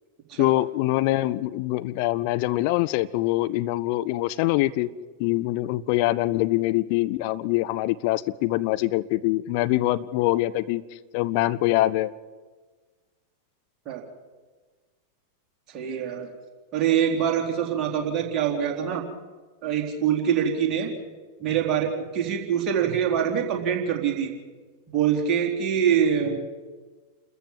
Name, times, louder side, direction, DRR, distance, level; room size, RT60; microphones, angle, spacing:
voice 1, 0.4-4.9 5.2-10.8 11.1-12.1, left 17 dB, 45° left, 13 dB, 0.7 m, -24 dB
voice 2, 15.7-16.3 16.7-19.0 19.6-20.9 21.4-24.3 24.9-26.5, right 8 dB, 35° right, 0 dB, 3.7 m, -24 dB
29.5 x 14.5 x 7.5 m, 1.4 s
figure-of-eight pair, 90°, 0 cm